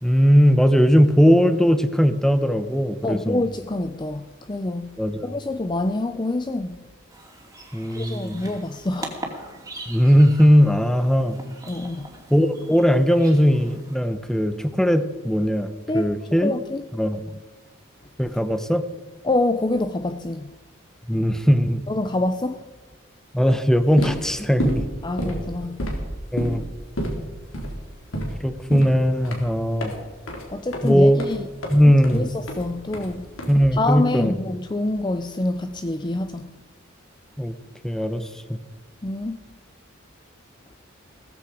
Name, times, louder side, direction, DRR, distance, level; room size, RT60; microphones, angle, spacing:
voice 1, 0.0-3.4 5.0-5.3 7.7-8.4 9.9-11.4 12.3-16.5 16.9-17.2 18.2-18.9 21.1-21.8 23.3-24.8 26.3-26.6 28.4-29.9 30.8-31.2 31.7-32.3 33.5-34.4 37.4-37.5 37.8-38.3, equal, ahead, 0.9 m, -19 dB
voice 2, 3.0-5.0 5.2-6.8 8.0-9.2 11.7-12.1 15.9-16.1 16.4-16.8 19.2-20.5 21.9-22.6 25.0-25.8 30.5-31.5 32.1-33.3 33.7-36.5 39.0-39.4, left 2 dB, 20° left, 0.5 m, -26 dB
sound 1, 7.1-14.0, right 2 dB, 15° right, 2.6 m, -41 dB
sound 2, 23.9-34.0, equal, 80° left, 3.7 m, -31 dB
17.5 x 14.5 x 5.0 m
head